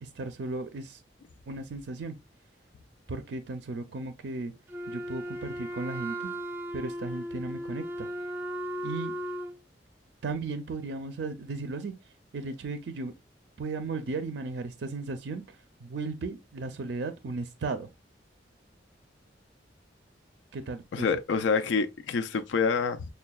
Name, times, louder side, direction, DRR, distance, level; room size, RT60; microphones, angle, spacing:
voice 1, 0.0-1.0 1.5-2.2 3.1-4.5 4.9-6.3 6.7-8.1 8.8-9.1 10.2-11.9 12.3-13.1 13.6-17.9 20.5-21.1, right 3 dB, 70° right, 0.5 m, -35 dB
Wind instrument woodwind instrument, 4.7-9.6, equal, 10° right, 0.3 m, -36 dB
voice 2, 20.9-23.1, left 5 dB, 80° left, 0.4 m, -27 dB
6.5 x 2.2 x 2.2 m
head